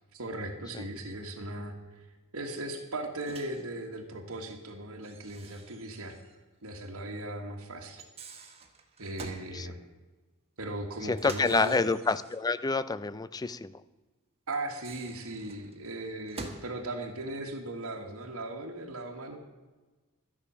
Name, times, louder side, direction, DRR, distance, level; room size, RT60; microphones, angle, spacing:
voice 1, 0.1-2.1 2.3-6.2 6.6-8.1 8.4-8.5 9.0-9.8 10.6-11.9 14.5-19.4, right 2 dB, 70° right, 1 dB, 1.6 m, -38 dB
Microwave oven, 3.2-3.7 5.0-6.4 6.7-6.8 7.9-9.5 11.1-12.5 14.5-16.7, right 3 dB, 30° right, 1.5 m, -47 dB
voice 2, 11.1-13.7, left 4 dB, 15° left, 16 dB, 0.4 m, -28 dB
12.5 x 10.0 x 6.2 m, 1.2 s
head